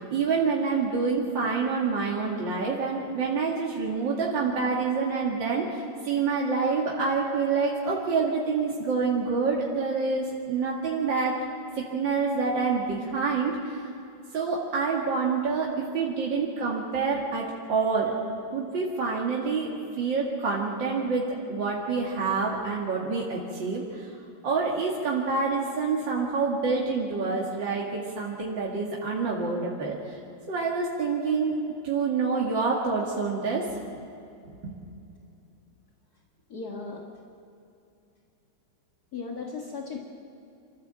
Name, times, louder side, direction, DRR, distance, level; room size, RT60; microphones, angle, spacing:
voice 1, 0.1-11.4 11.8-13.9 14.3-18.1 18.5-19.7 20.0-24.1 24.4-30.0 30.5-31.6 31.8-33.6 34.6-34.7, right 4 dB, 80° right, -4 dB, 2.8 m, -27 dB
voice 2, 36.5-37.0 39.1-40.0, left 4 dB, 55° left, -1 dB, 2.2 m, -36 dB
27.0 x 14.0 x 7.6 m, 2.6 s
omnidirectional pair, 2.0 m